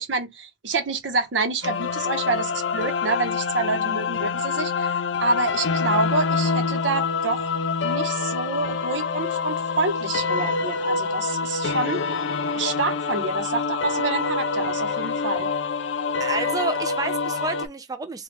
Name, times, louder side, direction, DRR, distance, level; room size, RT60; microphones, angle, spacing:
voice 1, 0.0-7.5 7.8-12.0 12.5-15.5, right 3 dB, 80° right, 0.8 m, -27 dB
sound 1, 1.6-17.7, left 5 dB, 80° left, 0.5 m, -26 dB
voice 2, 16.2-18.2, right 3 dB, 20° right, 0.3 m, -30 dB
3.1 x 2.2 x 3.3 m
head